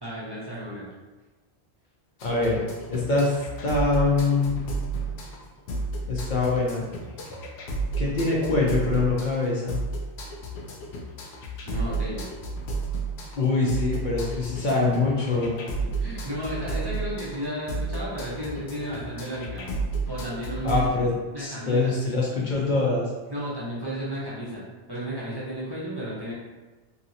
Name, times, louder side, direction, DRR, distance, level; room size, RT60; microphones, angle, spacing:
voice 1, 0.0-0.9 11.6-12.3 15.8-19.7 20.1-20.9 21.3-21.9 23.3-26.3, equal, 25° right, -8 dB, 0.7 m, -33 dB
sound 1, 2.2-20.9, right 3 dB, 90° left, 0.8 m, -32 dB
voice 2, 2.2-2.6 2.9-4.6 6.1-6.8 8.0-9.8 13.4-15.6 20.6-23.1, left 3 dB, 55° left, -4 dB, 0.7 m, -24 dB
2.9 x 2.7 x 2.7 m, 1.2 s
omnidirectional pair, 1.0 m